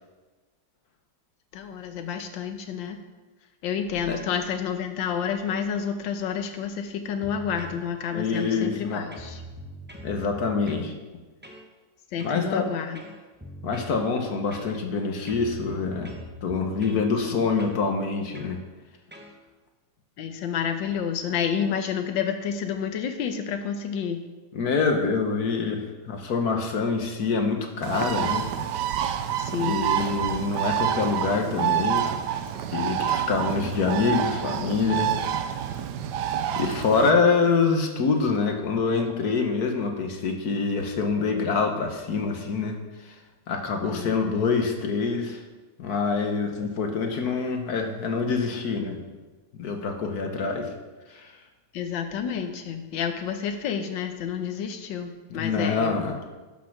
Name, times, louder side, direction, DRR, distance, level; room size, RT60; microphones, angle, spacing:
voice 1, 1.5-3.0 3.6-9.4 12.1-13.0 17.3-17.5 20.2-24.2 29.4-29.9 43.8-44.2 51.7-56.0, left 7 dB, 80° left, 7 dB, 1.6 m, -29 dB
sound 1, 7.2-7.8 8.3-8.8 9.1-10.9 11.4-11.7 12.2-12.5 12.9-14.0 14.5-15.0 15.3-17.1 17.6-17.8 18.3-18.6 19.1-19.3, equal, 10° right, 0.6 m, -42 dB
voice 2, 8.1-9.0 10.0-10.9 12.2-12.7 13.6-16.1 16.4-18.6 24.5-28.5 29.6-32.1 32.7-35.1 36.5-43.1 43.5-45.4 45.8-49.0 49.5-50.7 51.1-51.3 55.3-56.2, left 4 dB, 60° left, 4 dB, 1.5 m, -25 dB
Bird, 27.8-37.1, right 10 dB, 70° right, 1.2 m, -28 dB
11.0 x 6.4 x 5.9 m, 1.2 s
omnidirectional pair, 2.0 m